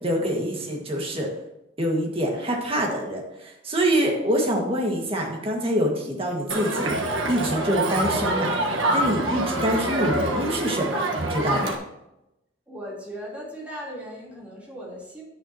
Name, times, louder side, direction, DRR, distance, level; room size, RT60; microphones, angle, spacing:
voice 1, 0.0-1.3 1.8-8.5 8.9-11.7, right 1 dB, 30° right, 0 dB, 1.8 m, -25 dB
Crowd, 6.5-11.7, right 1 dB, 85° right, 1.3 m, -26 dB
voice 2, 12.7-15.2, equal, 5° right, -7 dB, 3.4 m, -37 dB
10.5 x 8.9 x 2.9 m, 0.89 s
head